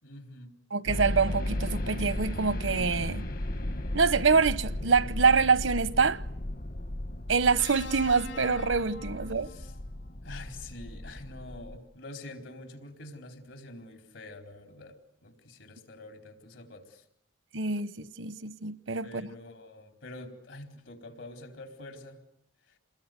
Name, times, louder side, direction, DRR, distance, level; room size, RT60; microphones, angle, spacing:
voice 1, 0.0-0.5 9.4-9.7 10.2-17.0 19.0-22.2 22.7-22.8, left 2 dB, 80° left, 4.4 m, -46 dB
voice 2, 0.7-3.2 3.9-6.2 7.3-9.5 17.5-19.3, right 5 dB, 85° right, 1.0 m, -25 dB
sound 1, 0.8-11.8, left 1 dB, 45° left, 1.0 m, -35 dB
sound 2, 7.6-9.8 11.2-11.4, left 4 dB, 65° left, 1.8 m, -44 dB
29.0 x 21.0 x 9.3 m
head